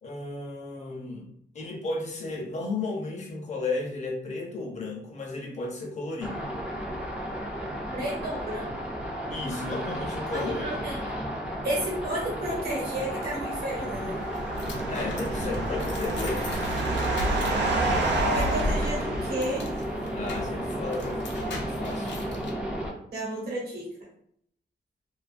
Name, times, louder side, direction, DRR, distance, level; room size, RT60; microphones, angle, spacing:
voice 1, 0.0-1.3 1.5-6.5 9.3-10.8 14.9-16.5 20.1-22.1, left 3 dB, 40° left, -1 dB, 0.6 m, -34 dB
sound 1, 6.2-22.9, equal, 5° right, 0.4 m, -33 dB
voice 2, 7.9-8.7 10.3-11.0 11.6-14.2 18.3-19.7 23.1-23.9, right 1 dB, 60° right, -4 dB, 1.0 m, -32 dB
sound 2, 13.6-19.9, right 2 dB, 85° right, 0.5 m, -30 dB
sound 3, 13.9-22.5, left 1 dB, 90° left, 0.5 m, -36 dB
2.5 x 2.4 x 2.5 m, 0.68 s
wide cardioid pair, 160°, 18 cm